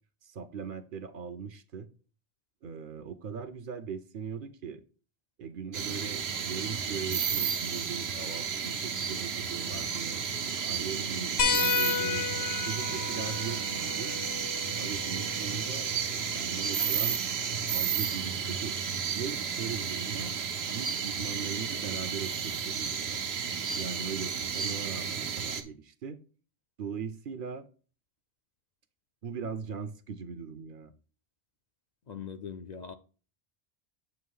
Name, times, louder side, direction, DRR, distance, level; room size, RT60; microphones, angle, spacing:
voice 1, 0.2-1.9 2.6-4.8 5.4-10.2 10.7-14.1 14.8-17.2 17.7-18.8 19.1-20.3 20.7-23.2 23.7-26.2 26.8-27.7 29.2-30.9, right 6 dB, 60° right, 0.8 m, -39 dB
sound 1, 5.7-25.6, right 6 dB, 85° right, 1.1 m, -32 dB
sound 2, 11.4-16.5 18.0-18.1 19.8-19.9, left 7 dB, 75° left, 1.0 m, -33 dB
voice 2, 32.1-32.9, left 7 dB, 55° left, 0.6 m, -41 dB
8.1 x 3.1 x 5.5 m
omnidirectional pair, 1.0 m